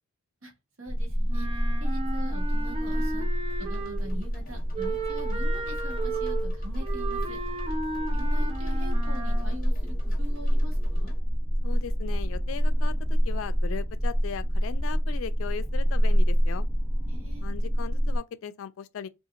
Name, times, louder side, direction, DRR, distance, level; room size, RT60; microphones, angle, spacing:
voice 1, 0.8-3.3 3.6-7.4 8.1-11.1 17.0-17.5, equal, 80° right, 1.1 m, -43 dB
sound 1, 0.9-18.2, equal, 5° right, 0.8 m, -27 dB
Wind instrument woodwind instrument, 1.3-4.2 4.7-9.6, right 3 dB, 25° right, 0.5 m, -35 dB
sound 2, 3.5-11.2, left 3 dB, 45° left, 0.7 m, -53 dB
voice 2, 11.6-16.7 17.4-19.1, left 7 dB, 70° left, 0.3 m, -38 dB
2.8 x 2.4 x 2.4 m
head